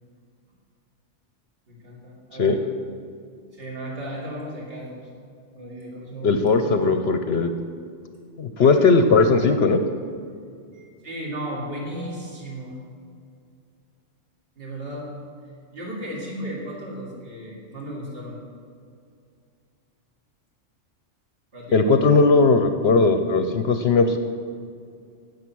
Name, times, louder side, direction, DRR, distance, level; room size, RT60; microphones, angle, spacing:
voice 1, 1.7-2.6 3.5-5.1 5.5-6.8 8.6-8.9 9.3-9.4 10.7-12.8 14.5-15.1 15.7-18.4 21.5-22.0, right 1 dB, 50° right, -4 dB, 2.8 m, -35 dB
voice 2, 6.2-7.5 8.4-9.8 21.7-24.2, left 4 dB, 60° left, 8 dB, 0.8 m, -18 dB
16.5 x 6.9 x 6.1 m, 2.3 s
omnidirectional pair, 1.3 m